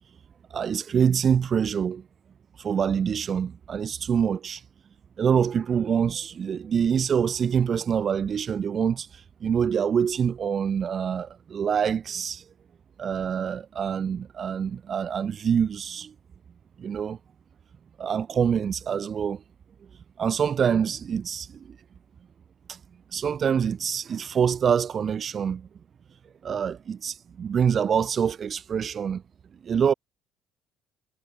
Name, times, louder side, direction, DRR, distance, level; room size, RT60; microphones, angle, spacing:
voice 1, 0.5-2.0 2.6-4.6 5.2-9.1 9.4-12.4 13.0-16.1 16.8-17.2 18.0-19.4 20.2-21.5 22.7-22.8 23.1-25.7 26.4-29.2 29.6-29.9, right 7 dB, 45° right, 1.8 m, -25 dB
hypercardioid pair, 55°, 0 cm